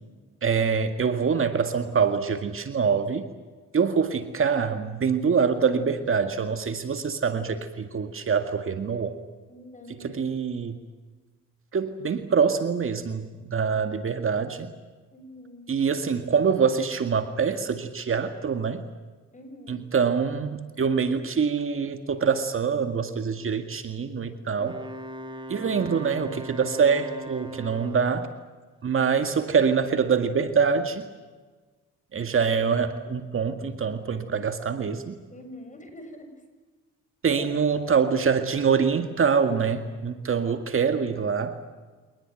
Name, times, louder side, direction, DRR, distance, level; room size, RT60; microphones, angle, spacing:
voice 1, 0.4-3.3 3.7-9.2 9.9-10.8 11.7-14.7 15.7-18.8 19.7-24.8 25.5-28.3 28.8-31.1 32.1-35.2 37.2-41.6, right 6 dB, 45° right, 8 dB, 2.0 m, -25 dB
voice 2, 9.5-10.4 15.1-15.7 19.3-19.8 35.3-36.4 37.3-37.6, left 1 dB, 25° left, 7 dB, 7.1 m, -45 dB
Wind instrument woodwind instrument, 24.6-28.3, equal, 15° right, 2.4 m, -39 dB
25.5 x 20.0 x 9.1 m, 1.3 s
cardioid pair, 90°, 30 cm